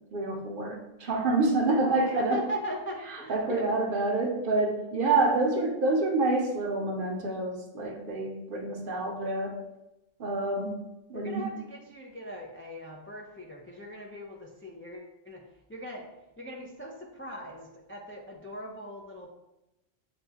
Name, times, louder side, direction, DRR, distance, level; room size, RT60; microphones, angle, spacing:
voice 1, 0.1-2.4 3.3-9.6 10.2-10.8 11.1-11.5, right 2 dB, 60° right, 2 dB, 0.8 m, -27 dB
voice 2, 1.9-3.7 11.1-16.1 16.4-19.3, equal, 20° left, -1 dB, 0.3 m, -40 dB
6.8 x 2.3 x 2.8 m, 0.92 s
omnidirectional pair, 1.1 m